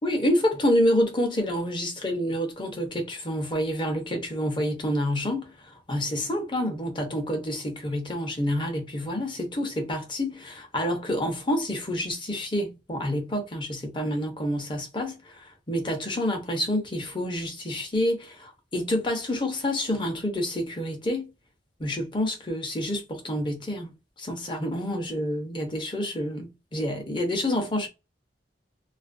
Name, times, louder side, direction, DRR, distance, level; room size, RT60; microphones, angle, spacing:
voice 1, 0.0-21.3 21.8-27.9, equal, 25° left, 0.6 m, -28 dB
2.4 x 2.1 x 2.4 m
head